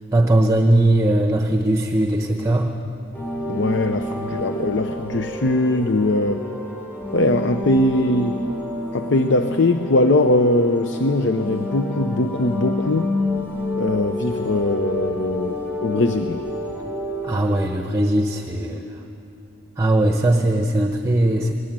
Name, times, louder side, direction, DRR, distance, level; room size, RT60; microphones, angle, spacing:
voice 1, 0.1-2.7 17.2-18.8 19.8-21.5, right 1 dB, 15° right, 5 dB, 0.8 m, -19 dB
sound 1, 3.1-17.6, left 1 dB, 10° left, 4.7 m, -29 dB
voice 2, 3.4-6.5 7.1-8.4 8.9-13.2 13.8-16.4, left 2 dB, 65° left, 9 dB, 0.7 m, -21 dB
20.0 x 18.5 x 8.8 m, 2.9 s
head